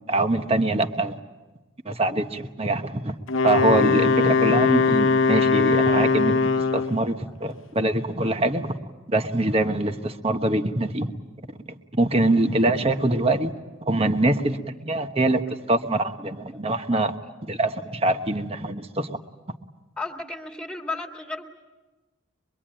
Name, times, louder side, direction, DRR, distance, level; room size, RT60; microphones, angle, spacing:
voice 1, 0.1-1.2 1.8-3.1 3.4-8.8 9.1-11.1 11.9-13.5 13.9-15.4 15.7-17.1 17.4-19.2, right 2 dB, 30° right, 7 dB, 1.2 m, -24 dB
Wind instrument woodwind instrument, 3.3-7.0, left 4 dB, 80° left, 0.8 m, -20 dB
voice 2, 16.5-17.0 20.0-21.4, left 3 dB, 5° left, 2 dB, 2.2 m, -34 dB
24.0 x 23.5 x 9.0 m, 1.1 s
head